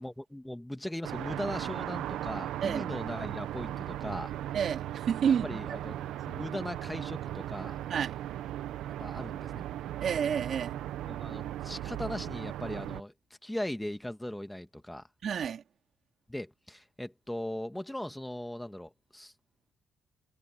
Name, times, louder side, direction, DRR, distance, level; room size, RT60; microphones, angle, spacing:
voice 1, 0.0-4.3 5.4-7.8 9.0-9.6 11.0-13.1 13.4-15.0 16.3-19.3, left 1 dB, 5° left, 1.6 m, -39 dB
sound 1, 1.0-13.0, right 12 dB, 85° right, 1.1 m, -37 dB
voice 2, 4.5-5.8 7.9-8.2 10.0-10.8 15.2-15.6, right 7 dB, 60° right, 3.3 m, -30 dB
cardioid pair, 90°, 0 cm